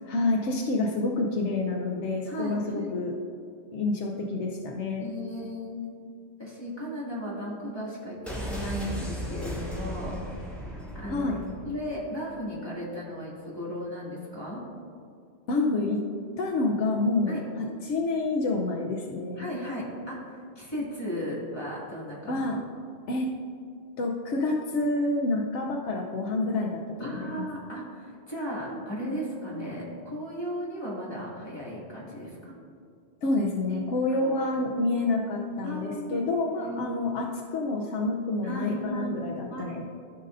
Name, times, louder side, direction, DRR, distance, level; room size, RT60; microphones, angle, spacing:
voice 1, 0.0-3.1 3.7-5.0 11.1-11.4 15.5-16.0 16.4-19.5 22.3-22.6 23.1-23.3 24.0-27.4 33.2-39.8, left 2 dB, 90° left, 0 dB, 1.0 m, -28 dB
voice 2, 2.3-2.9 5.0-5.9 6.4-10.4 10.9-11.3 11.6-14.6 17.3-17.4 19.4-22.5 27.0-32.5 34.2-34.5 35.6-36.2 36.6-37.0 38.4-39.2 39.5-39.8, equal, 20° left, -7 dB, 2.2 m, -35 dB
sound 1, 8.3-12.0 12.3-12.4, equal, ahead, 1.6 m, -36 dB
14.0 x 5.4 x 2.6 m, 2.3 s
omnidirectional pair, 1.2 m